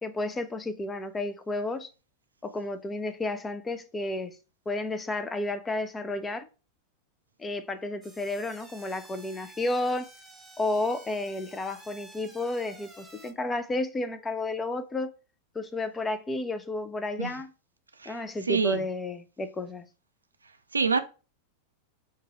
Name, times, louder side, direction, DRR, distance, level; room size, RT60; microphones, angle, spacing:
voice 1, 0.0-1.9 2.4-4.4 4.7-6.5 7.4-10.1 10.6-15.1 15.5-17.5 18.1-19.8, left 2 dB, 15° left, 0.4 m, -32 dB
sound 1, 8.0-13.3, right 2 dB, 5° right, 0.9 m, -51 dB
voice 2, 18.0-18.8 20.7-21.0, right 5 dB, 80° right, 0.4 m, -27 dB
4.7 x 2.2 x 4.2 m
figure-of-eight pair, 90°, 0 cm